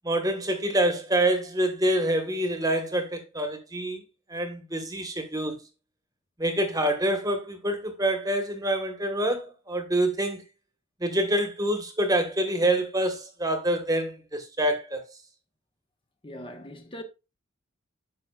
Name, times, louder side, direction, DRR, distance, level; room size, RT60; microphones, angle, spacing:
voice 1, 0.0-4.0 4.3-5.6 6.4-10.4 11.0-15.0, right 1 dB, 15° right, 1.3 m, -26 dB
voice 2, 16.2-17.0, left 1 dB, 25° left, 1.1 m, -40 dB
10.0 x 6.1 x 2.4 m
head